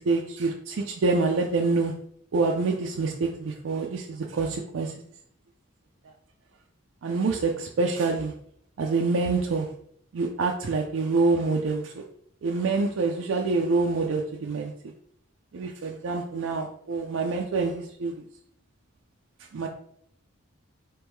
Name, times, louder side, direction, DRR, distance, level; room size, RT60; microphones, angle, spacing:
voice 1, 0.0-1.9 2.3-4.9 7.0-8.3 8.8-9.7 10.1-12.0 12.4-14.7 15.5-18.3 19.5-19.7, right 3 dB, 70° right, 1 dB, 0.4 m, -26 dB
3.5 x 3.1 x 4.5 m, 0.69 s
head